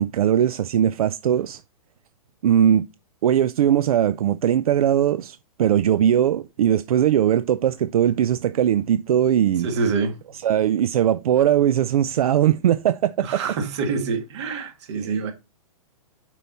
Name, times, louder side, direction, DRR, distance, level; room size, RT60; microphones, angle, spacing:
voice 1, 0.0-1.6 2.4-2.8 3.2-9.7 10.3-13.4 15.0-15.2, right 10 dB, 75° right, 0.4 m, -20 dB
voice 2, 9.6-10.1 13.2-15.3, right 4 dB, 50° right, 1.8 m, -26 dB
6.9 x 4.6 x 4.1 m
hypercardioid pair, 150°, 19 cm